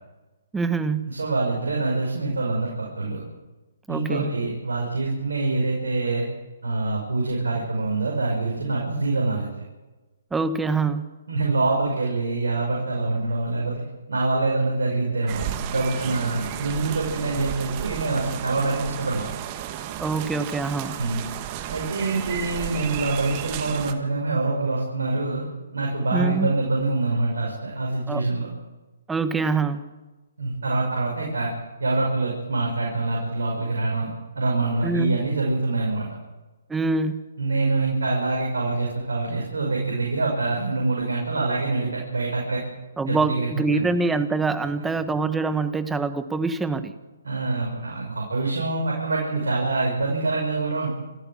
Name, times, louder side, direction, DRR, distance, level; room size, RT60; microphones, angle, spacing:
voice 1, 0.5-1.1 3.9-4.3 10.3-11.1 20.0-21.0 26.1-26.5 28.1-28.3 29.1-29.9 34.8-35.2 36.7-37.2 43.0-46.9, right 4 dB, 10° right, 11 dB, 1.3 m, -25 dB
voice 2, 1.1-3.2 3.9-6.2 6.6-9.5 11.3-19.3 21.0-21.2 21.7-25.4 25.7-28.5 30.4-31.5 31.8-34.1 34.4-36.1 37.4-42.6 43.1-43.8 47.2-50.9, right 3 dB, 80° right, -1 dB, 5.8 m, -25 dB
sound 1, 15.3-23.9, right 11 dB, 35° right, 1.8 m, -33 dB
28.0 x 13.5 x 7.5 m, 1.2 s
hypercardioid pair, 135°, 0 cm